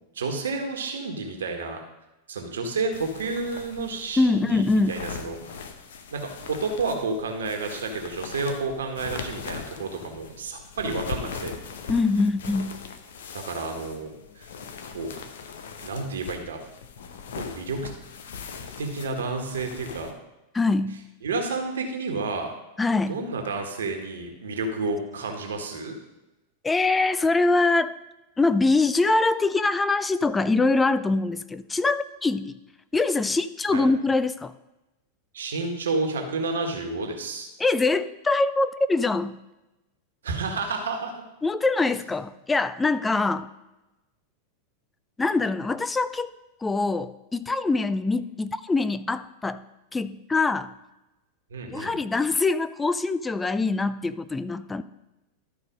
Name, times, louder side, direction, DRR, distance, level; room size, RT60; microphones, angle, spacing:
voice 1, 0.1-1.8 2.3-5.4 6.1-11.6 13.3-14.5 14.9-15.1 15.8-16.6 17.4-17.9 18.8-20.1 21.2-22.5 23.1-25.9 33.7-33.9 35.3-37.5 40.2-41.2 51.5-51.9, right 3 dB, 65° right, 3 dB, 1.5 m, -30 dB
sound 1, 2.9-20.1, left 6 dB, 60° left, 0.9 m, -40 dB
voice 2, 4.2-4.9 11.9-12.8 20.5-21.0 22.8-23.2 26.6-27.9 28.4-32.6 32.9-34.5 37.6-39.4 41.4-43.5 45.2-46.3 46.6-49.6 49.9-50.7 51.7-54.8, left 3 dB, 10° left, 13 dB, 0.4 m, -23 dB
12.0 x 4.7 x 5.2 m, 1.0 s
figure-of-eight pair, 90°, 0 cm